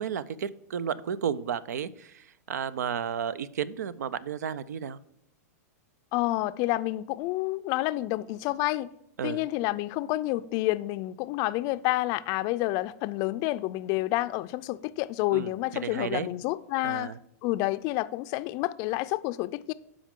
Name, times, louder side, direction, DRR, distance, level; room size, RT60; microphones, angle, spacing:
voice 1, 0.0-5.0 9.2-9.4 15.3-16.3 16.8-17.2, right 8 dB, 85° right, 0.5 m, -33 dB
voice 2, 6.1-8.9 9.2-17.1 17.4-19.7, left 17 dB, 40° left, 0.4 m, -29 dB
12.0 x 5.0 x 3.7 m
hypercardioid pair, 130°, 9 cm